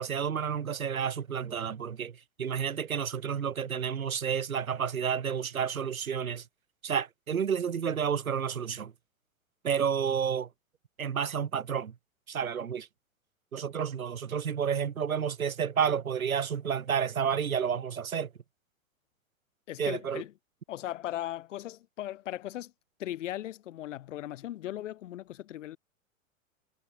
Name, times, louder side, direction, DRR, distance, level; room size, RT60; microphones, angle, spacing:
voice 1, 0.0-2.1 2.4-6.4 6.8-8.9 9.6-10.5 11.0-11.9 12.3-12.9 13.5-18.3 19.8-20.2, right 7 dB, 85° right, 1.1 m, -30 dB
voice 2, 19.7-20.3 20.7-22.7 23.0-25.8, left 13 dB, 60° left, 1.1 m, -38 dB
figure-of-eight pair, 105°, 41 cm